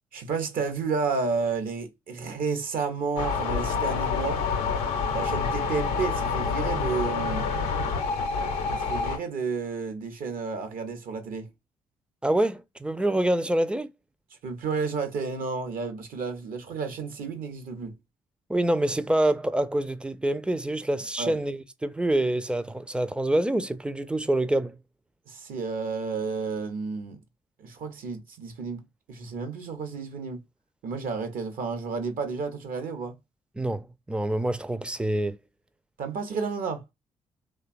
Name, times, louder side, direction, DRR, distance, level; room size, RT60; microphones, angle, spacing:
voice 1, 0.1-4.4 5.1-7.5 8.7-11.5 14.4-17.9 21.2-21.4 25.3-27.2 27.6-28.8 29.1-30.4 30.8-33.2 36.0-36.8, right 4 dB, 60° right, 0.7 m, -31 dB
sound 1, 3.2-9.2, left 5 dB, 80° left, 0.5 m, -27 dB
voice 2, 12.2-13.9 18.5-24.8 33.6-35.4, right 1 dB, 5° right, 0.4 m, -26 dB
2.8 x 2.2 x 2.4 m
hypercardioid pair, 40°, 16 cm